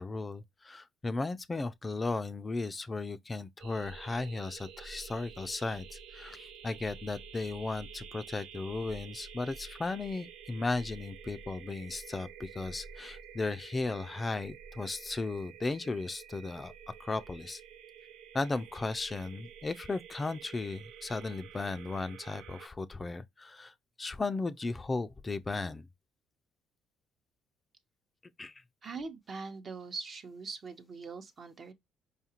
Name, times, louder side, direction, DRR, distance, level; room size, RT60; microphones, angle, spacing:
voice 1, 0.0-16.7 17.0-17.6 18.3-25.9 28.4-28.6, left 3 dB, 25° left, 0.3 m, -36 dB
sound 1, 3.6-22.7, right 6 dB, 80° right, 0.5 m, -50 dB
voice 2, 28.8-31.7, right 4 dB, 50° right, 0.8 m, -42 dB
4.8 x 2.4 x 2.9 m
supercardioid pair, 70°, 0 cm